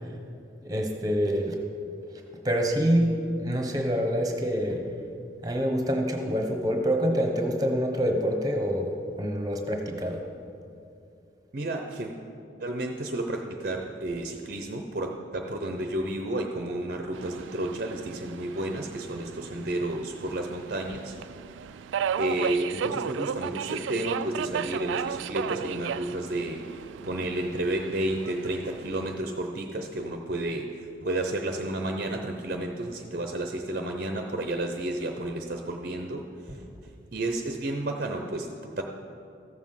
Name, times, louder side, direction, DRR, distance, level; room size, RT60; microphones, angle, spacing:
voice 1, 0.6-1.6 2.4-4.9 5.4-10.2, equal, 20° right, 3 dB, 1.2 m, -26 dB
voice 2, 11.5-12.1 12.6-21.2 22.2-36.6 37.1-38.8, right 1 dB, 50° right, 3 dB, 0.7 m, -31 dB
Subway metro underground, 17.1-29.2, right 8 dB, 85° right, 0.3 m, -35 dB
14.0 x 7.3 x 5.7 m, 2.5 s
head